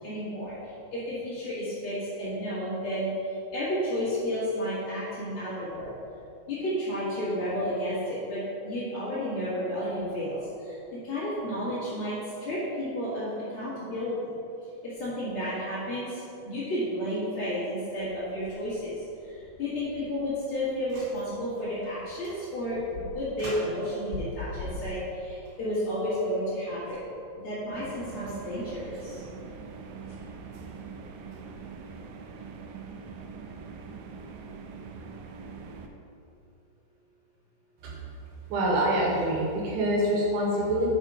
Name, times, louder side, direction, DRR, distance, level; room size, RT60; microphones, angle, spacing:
voice 1, 0.0-5.9 6.5-10.8 11.0-12.1 12.4-14.3 14.8-18.9 19.2-27.0 27.4-29.2, equal, 85° left, -11 dB, 1.1 m, -32 dB
sound 1, 18.0-31.6, left 3 dB, 70° left, 2.2 m, -46 dB
sound 2, 20.8-21.3 21.8-22.0 22.2-22.4 23.4-24.0 25.3-26.3, right 1 dB, 60° right, 3.6 m, -44 dB
sound 3, 27.7-35.9, right 5 dB, 90° right, 2.6 m, -43 dB
voice 2, 38.5-40.9, right 1 dB, 75° right, -3 dB, 3.3 m, -26 dB
7.2 x 5.5 x 4.9 m, 2.7 s
omnidirectional pair, 5.9 m